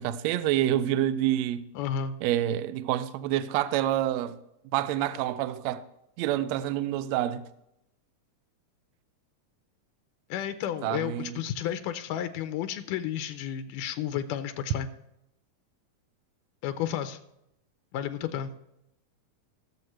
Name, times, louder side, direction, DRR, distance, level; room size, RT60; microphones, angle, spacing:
voice 1, 0.0-1.6 2.2-4.4 4.7-5.8 6.2-7.5 10.8-11.4, right 12 dB, 85° right, 1.5 m, -27 dB
voice 2, 1.8-2.2 10.3-14.9 16.6-17.2 17.9-18.5, left 10 dB, 90° left, 2.2 m, -32 dB
19.0 x 7.2 x 3.2 m
omnidirectional pair, 3.7 m